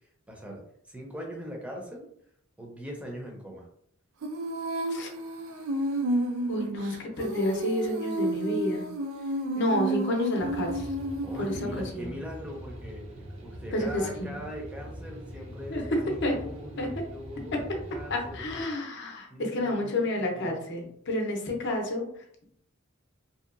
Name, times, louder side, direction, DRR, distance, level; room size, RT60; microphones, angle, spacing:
voice 1, 0.3-0.6 0.9-2.0 2.6-3.7 11.2-13.0 13.4-18.4 19.3-20.6, equal, 5° right, -1 dB, 0.5 m, -41 dB
Female singing, 4.2-11.9, right 1 dB, 85° right, 0.4 m, -31 dB
voice 2, 6.5-8.8 9.5-10.9 11.4-12.1 13.7-14.4 15.7-16.4 16.8-16.9 17.5-17.6 18.1-22.1, left 1 dB, 60° left, 1 dB, 0.6 m, -30 dB
sound 1, 10.4-18.6, equal, 70° right, 0.8 m, -42 dB
2.7 x 2.2 x 2.4 m, 0.68 s
head